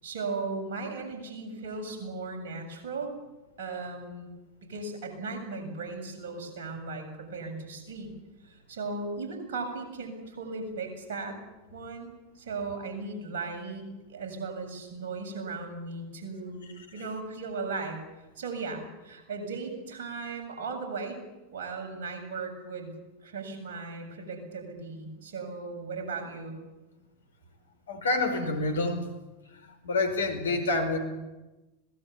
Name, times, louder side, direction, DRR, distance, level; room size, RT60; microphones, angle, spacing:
voice 1, 0.0-3.1 3.6-4.3 4.6-8.1 8.4-11.4 11.7-18.0 18.4-21.2 21.5-22.9 23.2-26.6, right 4 dB, 65° right, 3 dB, 7.4 m, -37 dB
voice 2, 27.9-29.0 29.8-31.0, left 2 dB, 80° left, 8 dB, 4.8 m, -27 dB
25.5 x 19.0 x 8.6 m, 1.1 s
figure-of-eight pair, 85°, 0 cm